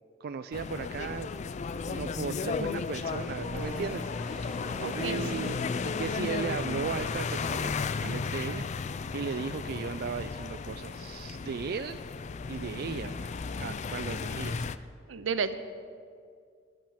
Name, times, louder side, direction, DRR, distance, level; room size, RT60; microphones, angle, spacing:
voice 1, 0.2-1.3 1.9-4.7 4.9-7.7 8.0-8.6 9.1-12.0 12.5-13.3 13.6-14.7, right 5 dB, 55° right, 10 dB, 0.3 m, -36 dB
sound 1, 0.5-14.8, left 4 dB, 35° left, 0.3 m, -34 dB
sound 2, 3.6-8.6, equal, 10° right, 1.9 m, -49 dB
voice 2, 4.8-5.5 15.1-15.5, right 6 dB, 85° right, 11 dB, 0.7 m, -32 dB
10.0 x 8.8 x 7.4 m, 2.2 s
head